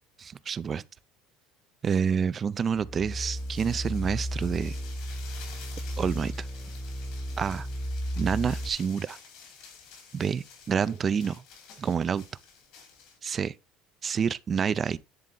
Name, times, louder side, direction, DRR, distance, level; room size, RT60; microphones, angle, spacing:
voice 1, 0.2-0.8 1.8-4.8 6.0-6.5 7.4-7.7 8.2-9.2 10.1-11.4 11.8-12.2 13.2-13.5 14.0-15.0, right 7 dB, 35° right, 0.5 m, -28 dB
sound 1, 2.8-8.7, equal, ahead, 0.9 m, -34 dB
sound 2, 3.1-13.2, left 6 dB, 75° left, 4.4 m, -50 dB
10.5 x 3.8 x 3.8 m
supercardioid pair, 105°, 0 cm